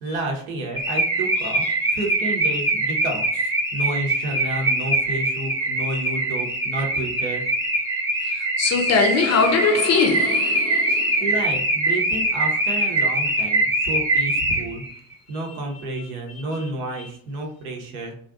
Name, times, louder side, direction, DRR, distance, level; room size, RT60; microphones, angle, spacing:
voice 1, 0.0-1.6 1.9-7.4 10.9-14.8 15.3-18.1, right 2 dB, 75° right, 0.7 m, -30 dB
Car / Alarm, 0.8-14.9, right 1 dB, 5° right, 0.6 m, -23 dB
voice 2, 8.4-11.2, left 4 dB, 35° left, 0.5 m, -21 dB
2.4 x 2.1 x 2.4 m
figure-of-eight pair, 50°, 44 cm